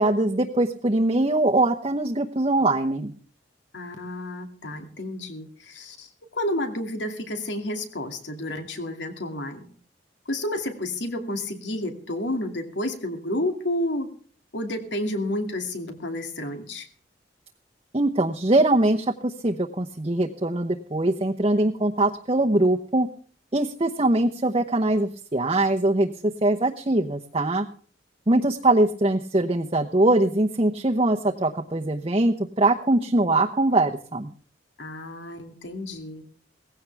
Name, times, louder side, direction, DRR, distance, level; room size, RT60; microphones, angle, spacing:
voice 1, 0.0-3.1 17.9-23.1 23.5-27.7 28.3-34.3, right 2 dB, 30° right, 2 dB, 0.9 m, -22 dB
voice 2, 3.7-9.7 10.3-14.1 14.5-16.9 34.8-36.2, left 1 dB, 80° left, 6 dB, 2.6 m, -30 dB
18.0 x 16.0 x 3.5 m, 0.43 s
head